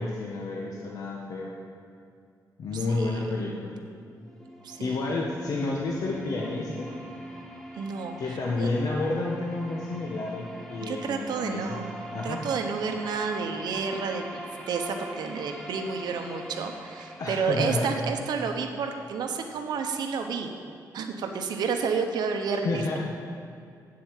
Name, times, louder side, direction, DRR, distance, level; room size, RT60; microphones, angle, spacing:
voice 1, 0.0-1.5 2.6-3.8 4.8-6.9 8.2-11.8 12.1-12.4 17.2-17.9 22.5-23.0, left 3 dB, 55° left, -2 dB, 1.1 m, -30 dB
voice 2, 2.7-3.5 4.6-5.0 7.7-8.7 10.8-20.5 20.9-23.0, right 5 dB, 75° right, 5 dB, 1.0 m, -31 dB
sound 1, 4.1-20.1, equal, 5° left, 0.8 m, -42 dB
8.7 x 7.7 x 7.3 m, 2.4 s
wide cardioid pair, 155°, 7 cm